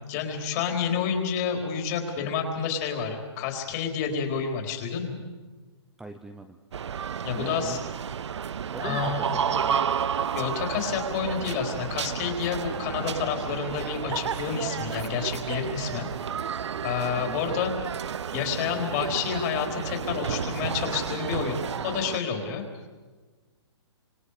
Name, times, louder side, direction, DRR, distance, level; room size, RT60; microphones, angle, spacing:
voice 1, 0.1-5.2 7.2-7.8 8.8-9.4 10.3-16.1 16.8-17.8 18.3-22.6, left 6 dB, 35° left, 3 dB, 4.2 m, -29 dB
voice 2, 6.0-6.6 7.3-7.8 8.7-9.9 17.2-17.4, right 2 dB, 5° right, 5 dB, 0.7 m, -41 dB
sound 1, 6.7-22.2, right 8 dB, 75° right, 0.8 m, -31 dB
28.5 x 26.0 x 5.0 m, 1.4 s
hypercardioid pair, 150°, 15 cm